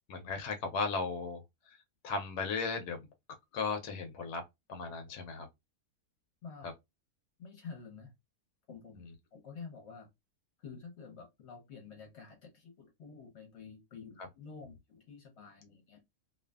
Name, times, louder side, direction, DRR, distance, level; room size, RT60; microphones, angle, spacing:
voice 1, 0.1-1.4 2.0-3.1 3.5-4.4 4.7-5.5, left 4 dB, 80° left, 1.1 m, -35 dB
voice 2, 7.4-8.1 8.7-9.0 9.3-10.1 10.6-16.0, left 5 dB, 50° left, 1.0 m, -49 dB
2.6 x 2.5 x 2.2 m
omnidirectional pair, 1.7 m